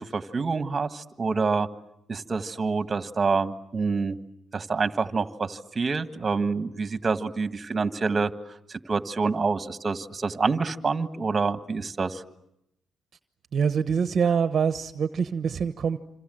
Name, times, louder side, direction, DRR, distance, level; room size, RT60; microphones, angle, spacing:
voice 1, 0.0-1.7 2.1-4.2 4.5-8.3 8.7-12.2, right 4 dB, 30° right, 10 dB, 1.6 m, -27 dB
voice 2, 13.5-16.0, right 6 dB, 50° right, 10 dB, 1.1 m, -25 dB
27.0 x 26.5 x 7.8 m, 0.81 s
cardioid pair, 90°, 0 cm